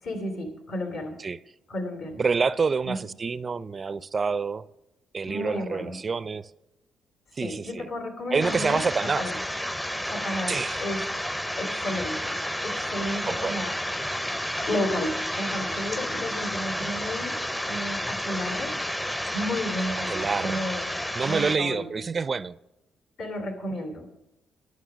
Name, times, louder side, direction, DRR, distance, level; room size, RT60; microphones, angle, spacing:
voice 1, 0.0-1.2 1.7-2.2 2.8-3.0 5.3-6.0 7.4-9.4 10.1-11.1 11.6-13.8 14.7-18.8 19.3-20.9 21.2-21.9 23.2-24.1, left 1 dB, 70° left, 2.9 m, -32 dB
voice 2, 2.2-4.6 5.1-6.5 7.4-7.9 8.3-9.3 10.5-10.8 13.3-13.6 20.1-20.6 21.2-22.6, right 5 dB, 35° right, 0.4 m, -27 dB
sound 1, 8.4-21.6, equal, 10° left, 0.6 m, -31 dB
11.5 x 9.4 x 6.2 m
cardioid pair, 90°, 0 cm